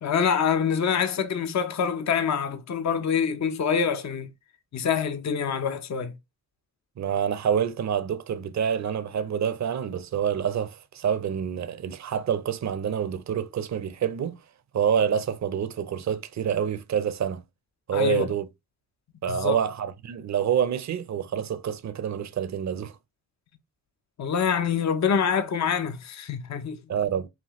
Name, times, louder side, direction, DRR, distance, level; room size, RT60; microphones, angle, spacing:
voice 1, 0.0-4.3 4.7-6.1 17.9-18.3 19.3-19.6 24.2-26.8, left 7 dB, 50° left, 0.7 m, -25 dB
voice 2, 7.0-14.4 14.7-17.4 17.9-18.5 19.2-23.0 26.9-27.3, right 8 dB, 50° right, 0.6 m, -27 dB
5.7 x 2.3 x 3.0 m
cardioid pair, 70°, 36 cm